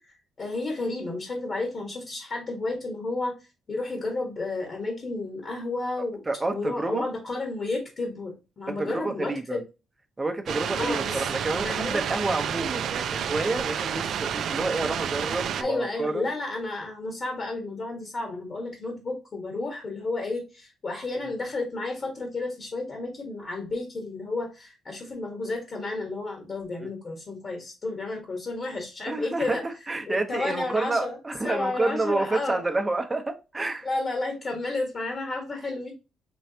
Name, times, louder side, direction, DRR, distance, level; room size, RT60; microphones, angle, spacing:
voice 1, 0.4-3.3 3.7-6.2 6.5-9.6 10.8-11.3 11.6-12.0 15.6-29.6 30.1-31.1 31.4-32.6 33.8-35.9, left 2 dB, 45° left, 1.4 m, -32 dB
voice 2, 6.3-7.1 8.7-9.6 10.2-16.3 29.1-33.9, right 2 dB, 20° right, 0.9 m, -29 dB
sound 1, 10.5-15.6, right 8 dB, 70° right, 0.4 m, -30 dB
4.5 x 3.1 x 2.8 m
cardioid pair, 90°, 0 cm